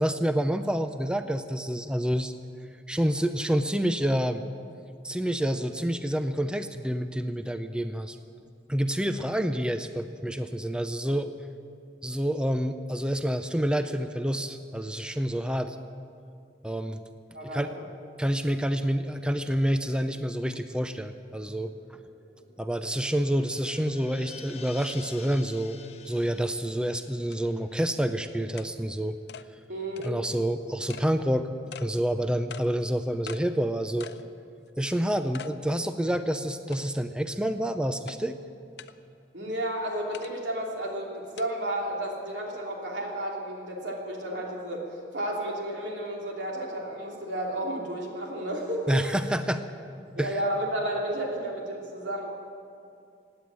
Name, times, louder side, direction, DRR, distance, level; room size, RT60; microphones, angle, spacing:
voice 1, 0.0-2.3 2.9-4.4 5.0-8.2 8.7-11.3 12.0-15.8 16.6-17.0 17.5-17.7 18.2-21.7 22.6-25.8 26.1-29.2 30.0-31.5 31.8-34.1 34.8-38.4 48.9-49.6 50.2-50.4, equal, 5° right, 9 dB, 0.5 m, -28 dB
voice 2, 17.3-17.8 29.7-30.2 39.3-49.0 50.1-52.3, right 1 dB, 90° right, -1 dB, 3.1 m, -32 dB
sound 1, 22.0-28.7 29.0-29.1, left 4 dB, 35° left, 0.9 m, -49 dB
sound 2, 26.6-26.7 27.3-27.4 27.8-27.9 28.6-28.7 29.3-29.5 30.0-30.1 30.9-31.1 31.7-31.9 32.5-32.7 33.3-33.4 34.0-34.2 34.7-34.8 35.3-35.5 36.0-36.1 36.7-37.1 38.1-38.2 38.8-38.9 40.1-40.3 41.4-41.5, left 7 dB, 70° left, 0.6 m, -43 dB
16.5 x 9.5 x 8.8 m, 2.4 s
head